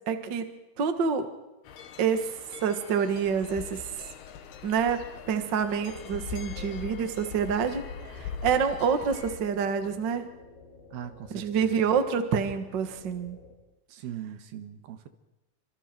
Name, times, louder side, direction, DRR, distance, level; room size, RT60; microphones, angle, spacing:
voice 1, 0.1-0.5 0.8-1.3 2.0-2.2 2.6-3.9 4.6-5.0 5.3-10.3 11.3-13.4, right 6 dB, 45° right, 7 dB, 1.5 m, -27 dB
sound 1, 1.7-9.4, left 6 dB, 90° left, 3.6 m, -41 dB
sound 2, 5.1-13.5, left 3 dB, 60° left, 7.0 m, -51 dB
voice 2, 10.9-12.0 13.9-15.1, right 10 dB, 80° right, 8 dB, 3.3 m, -40 dB
28.5 x 25.5 x 4.5 m, 1.0 s
omnidirectional pair, 4.4 m